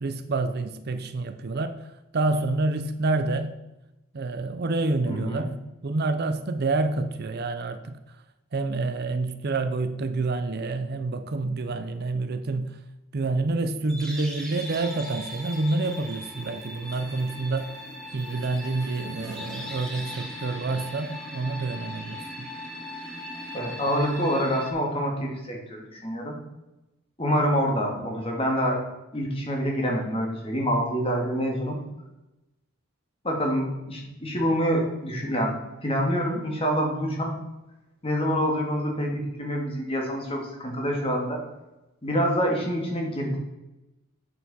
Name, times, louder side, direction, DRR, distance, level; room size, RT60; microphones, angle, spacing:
voice 1, 0.0-3.6 4.1-5.5 5.8-8.2 8.5-12.8 13.1-17.8 18.1-22.5, right 3 dB, 45° right, 9 dB, 0.5 m, -28 dB
voice 2, 5.1-5.5 23.5-26.4 27.2-28.8 29.1-31.8 33.2-37.3 38.0-41.4 42.0-43.4, equal, 25° left, 0 dB, 1.8 m, -26 dB
sound 1, 13.9-24.7, left 1 dB, 5° left, 1.2 m, -39 dB
8.1 x 6.9 x 4.1 m, 0.99 s
head